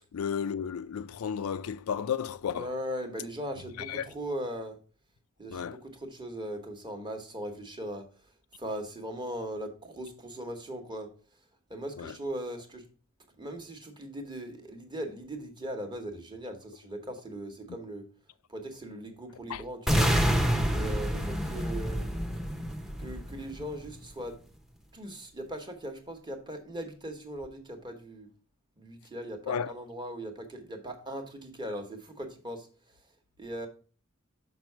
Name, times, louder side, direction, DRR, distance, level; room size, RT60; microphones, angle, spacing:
voice 1, 0.0-2.7 3.9-4.1 5.5-5.8 12.0-12.1 19.5-19.6 29.5-29.7, left 7 dB, 80° left, 0.4 m, -33 dB
voice 2, 2.5-4.8 5.4-8.3 8.6-11.1 11.7-12.9 13.4-18.1 18.5-20.4 20.7-22.1 23.0-24.4 24.9-28.3 28.8-33.0 33.4-33.7, right 1 dB, 20° right, 1.2 m, -39 dB
sound 1, 19.9-23.9, equal, ahead, 0.7 m, -28 dB
6.0 x 5.4 x 4.5 m
head